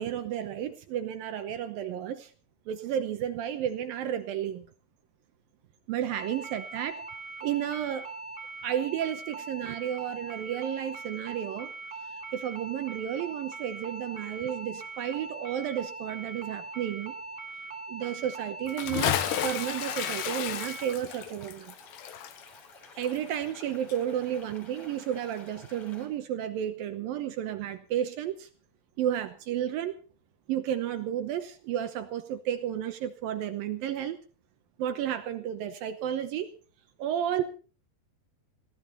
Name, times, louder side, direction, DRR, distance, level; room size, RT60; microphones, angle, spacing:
voice 1, 0.0-2.3 2.7-4.7 5.9-7.0 7.4-8.1 8.6-11.7 12.0-17.2 17.9-21.7 23.0-28.5 29.0-30.0 30.5-34.2 34.8-36.5 37.0-37.4, right 10 dB, 70° right, 10 dB, 2.4 m, -32 dB
sound 1, 6.1-20.9, right 3 dB, 25° right, 2.3 m, -41 dB
Bathtub (filling or washing) / Splash splatter, 18.7-23.6 23.9-24.0, left 11 dB, 80° left, 3.2 m, -32 dB
sound 2, 19.0-26.1, left 3 dB, 35° left, 4.1 m, -52 dB
20.0 x 15.5 x 4.1 m, 0.37 s
omnidirectional pair, 4.8 m